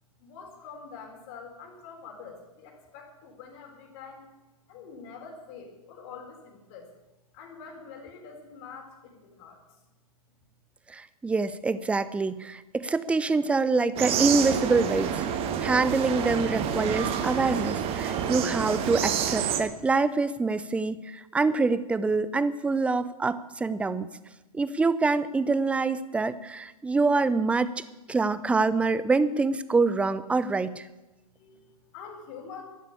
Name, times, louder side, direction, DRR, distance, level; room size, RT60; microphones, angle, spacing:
voice 1, 0.2-4.3 4.7-6.9 7.3-9.8 31.3-32.6, left 5 dB, 45° left, 3 dB, 4.1 m, -45 dB
voice 2, 10.9-15.2 15.6-24.1 24.5-30.9, right 3 dB, 5° right, 15 dB, 0.6 m, -25 dB
sound 1, 14.0-19.6, right 8 dB, 30° right, 1.5 m, -28 dB
12.0 x 11.0 x 8.5 m, 1.1 s
hypercardioid pair, 120°, 20 cm